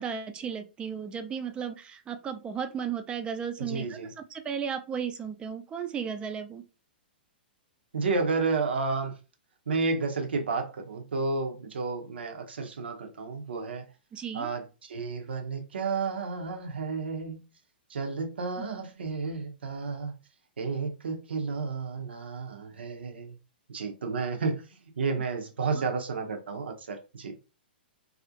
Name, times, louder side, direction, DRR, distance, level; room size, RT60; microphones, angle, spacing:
voice 1, 0.0-6.6 14.1-14.5 18.6-18.7 25.6-25.8, right 7 dB, 20° right, 0.4 m, -35 dB
voice 2, 3.7-4.1 7.9-9.1 9.7-13.8 14.3-17.4 17.9-20.2 20.6-23.3 23.7-24.6 25.0-27.3, right 4 dB, 85° right, 0.6 m, -31 dB
2.4 x 2.0 x 2.7 m
hypercardioid pair, 125°, 6 cm